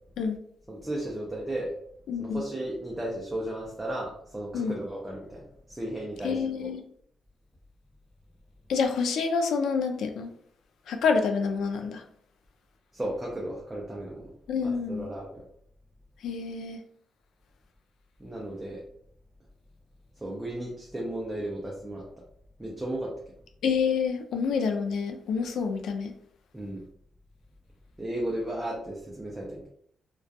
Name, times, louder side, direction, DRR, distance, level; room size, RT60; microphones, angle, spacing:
voice 1, 0.7-1.7 2.2-6.7 12.9-14.3 14.6-15.4 18.2-18.8 20.2-22.1 22.6-23.1 26.5-26.8 28.0-29.7, right 1 dB, 10° right, -4 dB, 0.4 m, -35 dB
voice 2, 2.1-2.4 4.5-4.7 6.2-6.8 8.7-10.3 10.9-12.0 14.5-15.1 16.2-16.8 23.6-26.1, left 5 dB, 70° left, 6 dB, 0.3 m, -28 dB
2.2 x 2.2 x 2.6 m, 0.65 s
cardioid pair, 165°, 0 cm